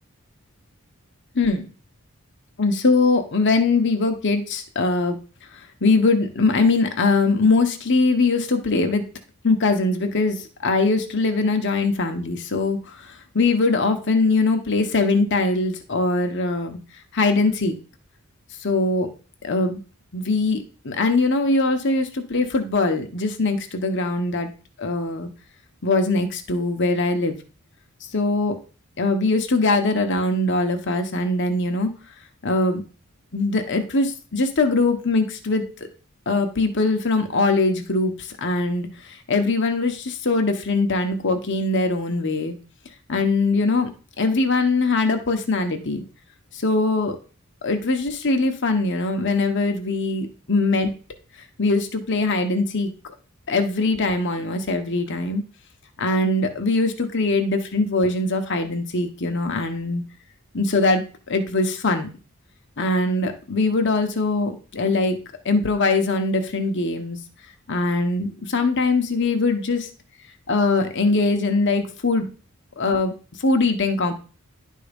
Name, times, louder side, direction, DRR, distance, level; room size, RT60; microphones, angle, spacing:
voice 1, 1.3-1.7 2.6-5.2 5.8-9.1 9.4-16.8 17.1-17.8 18.6-19.1 19.4-19.8 20.1-24.5 24.8-25.3 25.8-27.4 28.1-28.6 29.0-31.9 32.4-32.8 33.3-35.7 36.3-42.5 43.1-43.9 44.2-46.0 46.5-47.2 47.6-51.0 51.6-52.9 53.5-55.4 56.0-60.0 60.5-62.1 62.8-65.2 65.4-67.2 67.7-69.9 70.5-72.3 72.8-73.1 73.4-74.1, left 3 dB, 55° left, 5 dB, 1.2 m, -22 dB
11.0 x 3.8 x 5.3 m, 0.36 s
head